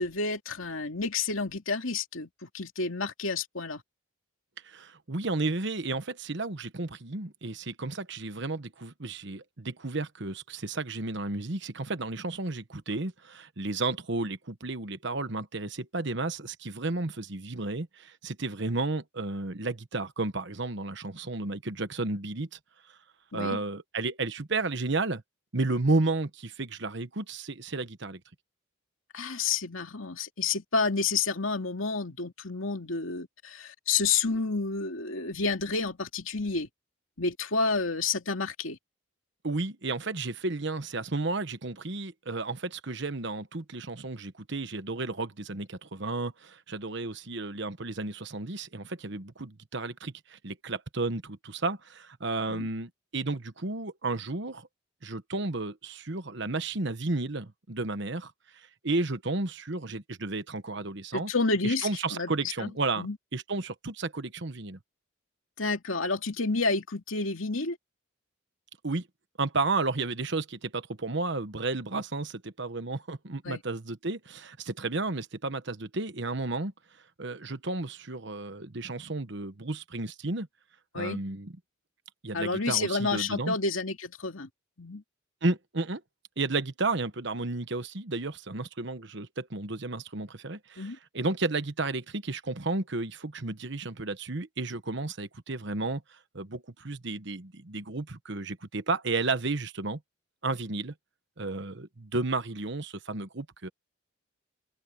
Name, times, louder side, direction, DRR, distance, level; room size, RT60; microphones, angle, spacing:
voice 1, 0.0-3.8 23.3-23.6 29.1-36.7 37.2-38.8 52.5-52.7 61.1-62.7 63.0-63.2 65.6-67.8 73.4-73.6 80.9-81.2 82.3-84.5 84.8-85.0 90.8-91.0, left 4 dB, 75° left, 2.5 m, -30 dB
voice 2, 4.6-22.6 23.3-25.2 25.5-28.2 39.4-54.7 55.0-58.3 58.8-61.3 61.6-64.8 68.8-69.1 69.4-76.7 77.2-80.5 80.9-81.5 82.2-83.5 85.4-86.0 86.4-100.0 100.4-100.9 101.4-103.7, right 3 dB, 55° right, 1.2 m, -32 dB
head